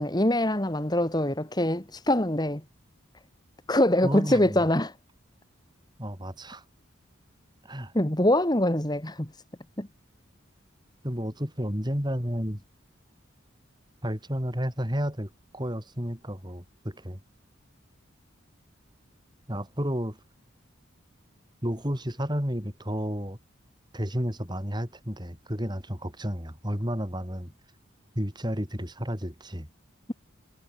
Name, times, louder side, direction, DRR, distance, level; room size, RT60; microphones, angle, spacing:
voice 1, 0.0-2.6 3.7-4.9 7.9-9.3 9.8-9.9, left 1 dB, 20° left, 1.9 m, -24 dB
voice 2, 4.0-4.7 6.0-6.6 7.6-7.9 11.0-12.6 14.0-17.2 19.5-20.2 21.6-23.4 23.9-27.5 28.2-29.7, equal, 20° right, 7.1 m, -31 dB
head